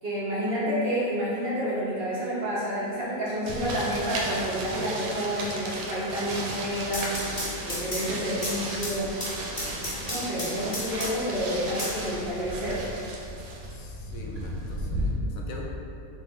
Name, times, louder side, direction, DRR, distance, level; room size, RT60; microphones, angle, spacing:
voice 1, 0.0-9.1 10.1-12.8, equal, 50° right, -8 dB, 1.0 m, -29 dB
sound 1, 3.5-15.1, right 1 dB, 85° right, 1.1 m, -35 dB
sound 2, 6.7-11.3 11.8-12.8, left 1 dB, 35° left, 0.6 m, -34 dB
voice 2, 13.7-15.6, left 3 dB, 80° left, -1 dB, 1.0 m, -43 dB
4.2 x 2.4 x 3.5 m, 2.7 s
omnidirectional pair, 1.4 m